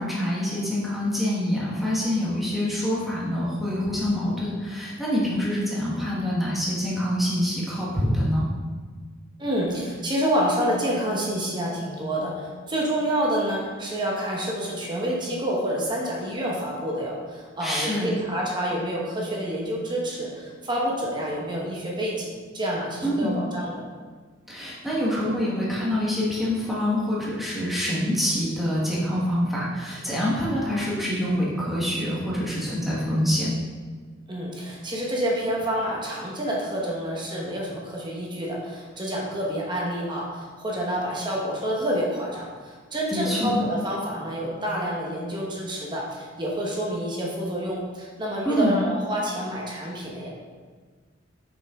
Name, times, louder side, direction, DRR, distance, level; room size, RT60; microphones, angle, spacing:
voice 1, 0.0-8.5 17.6-18.1 23.0-23.3 24.5-33.5 43.1-43.6 48.4-48.7, equal, ahead, -7 dB, 1.3 m, -26 dB
voice 2, 9.4-23.8 34.3-50.3, equal, 25° right, -3 dB, 1.1 m, -28 dB
6.6 x 5.5 x 3.6 m, 1.5 s
head